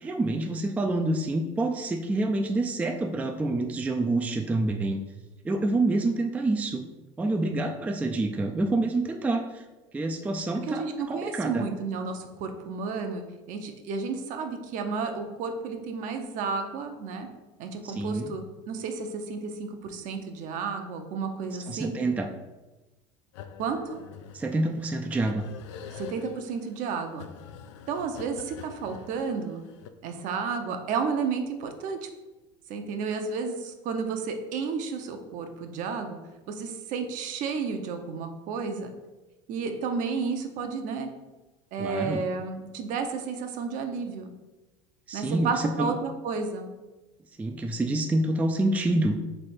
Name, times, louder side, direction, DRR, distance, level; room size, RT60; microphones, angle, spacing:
voice 1, 0.0-5.0 5.4-6.9 7.2-9.6 9.9-11.6 17.9-18.3 21.7-22.3 24.3-25.4 41.8-42.2 45.1-45.5 45.8-45.9 47.4-49.2, right 2 dB, 10° right, 4 dB, 0.3 m, -27 dB
voice 2, 10.6-17.3 17.6-21.9 23.6-24.0 25.9-27.3 27.9-29.6 30.0-32.1 32.7-36.2 36.5-38.9 39.5-41.1 41.7-44.3 45.1-46.7, right 5 dB, 55° right, 6 dB, 0.7 m, -32 dB
sound 1, 23.3-29.9, left 7 dB, 85° left, 0.4 m, -46 dB
3.7 x 3.3 x 4.3 m, 1.1 s
supercardioid pair, 105°, 15 cm